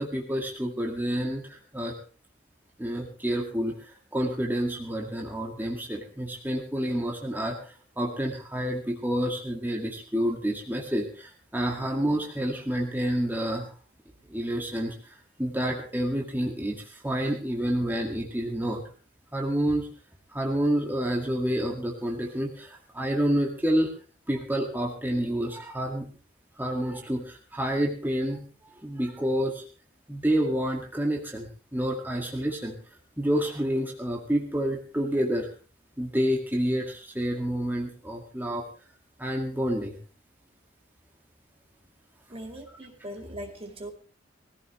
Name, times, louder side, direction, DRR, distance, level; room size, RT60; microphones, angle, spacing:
voice 1, 0.0-2.0 2.8-13.7 14.3-14.9 15.4-18.8 19.3-19.9 20.3-23.9 24.3-26.1 26.6-28.4 28.8-29.6 30.1-32.7 33.2-35.5 36.0-38.6 39.2-40.0, right 1 dB, 10° right, 1 dB, 2.0 m, -28 dB
voice 2, 42.3-43.9, equal, 30° right, 4 dB, 2.3 m, -40 dB
20.5 x 15.5 x 3.2 m, 0.35 s
head